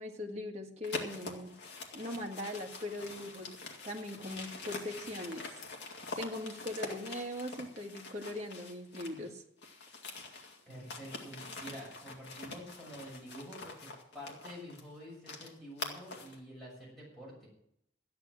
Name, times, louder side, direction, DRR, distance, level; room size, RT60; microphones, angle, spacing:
voice 1, 0.0-1.5 1.9-3.5 3.8-5.5 6.2-9.4, left 1 dB, 35° right, 1 dB, 1.7 m, -40 dB
sound 1, 0.8-9.3 9.6-16.4, left 3 dB, 60° left, 2.2 m, -45 dB
voice 2, 10.7-17.5, equal, ahead, -5 dB, 6.4 m, -48 dB
13.0 x 10.0 x 6.2 m, 0.72 s
head